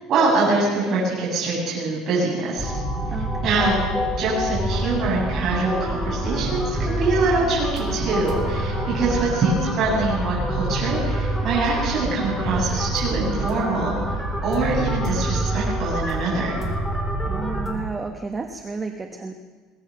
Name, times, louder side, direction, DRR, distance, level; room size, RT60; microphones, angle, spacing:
voice 1, 0.1-2.7 3.4-3.8 4.2-13.9 14.4-16.6, right 3 dB, 40° right, -5 dB, 7.4 m, -24 dB
sound 1, 2.6-17.7, right 1 dB, 5° left, 3.6 m, -26 dB
voice 2, 3.1-3.7 17.2-19.3, right 4 dB, 15° right, 5 dB, 1.1 m, -32 dB
22.0 x 18.5 x 6.7 m, 1.5 s
cardioid pair, 160°, 0 cm